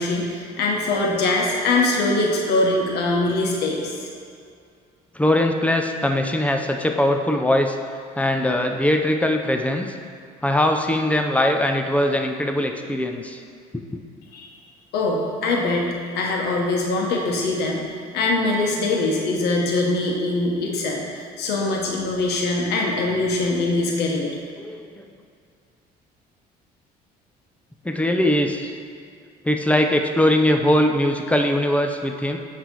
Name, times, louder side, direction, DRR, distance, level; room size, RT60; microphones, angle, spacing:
voice 1, 0.0-4.0 14.3-14.5 14.9-17.8 18.1-24.3, left 2 dB, 75° left, -1 dB, 1.3 m, -22 dB
voice 2, 5.2-7.7 8.2-9.9 10.4-13.4 13.9-14.0 24.6-25.0 27.8-28.7 29.4-32.4, left 1 dB, 10° left, 4 dB, 0.5 m, -21 dB
9.1 x 3.3 x 5.4 m, 2.3 s
cardioid pair, 110°, 17 cm